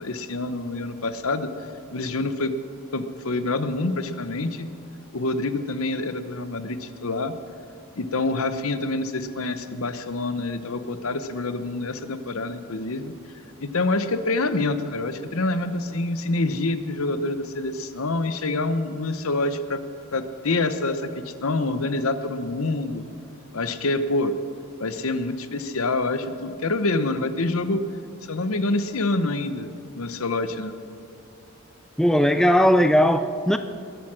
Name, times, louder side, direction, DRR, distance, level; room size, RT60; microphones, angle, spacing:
voice 1, 0.0-1.5 1.9-2.5 2.9-4.7 5.1-7.3 8.0-13.1 13.6-19.8 20.1-23.0 23.5-24.3 24.8-27.8 28.3-30.7, left 2 dB, 70° left, 11 dB, 0.9 m, -26 dB
voice 2, 32.0-33.6, equal, ahead, 9 dB, 0.3 m, -18 dB
21.0 x 9.2 x 6.3 m, 2.5 s
head